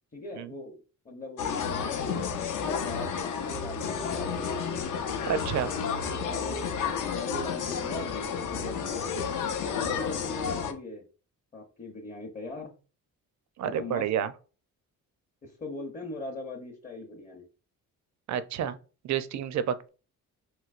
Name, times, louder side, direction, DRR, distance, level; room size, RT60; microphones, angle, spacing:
voice 1, 0.1-2.3 2.6-4.5 6.2-9.4 9.8-11.0 11.5-12.7 13.6-14.1 15.4-17.5, left 3 dB, 25° left, 0.7 m, -40 dB
sound 1, 1.4-10.7, left 6 dB, 60° left, 0.6 m, -31 dB
voice 2, 5.3-5.7 13.6-14.3 18.3-18.8 19.0-19.9, right 9 dB, 55° right, 0.4 m, -29 dB
3.1 x 2.9 x 2.4 m
cardioid pair, 95°, 35 cm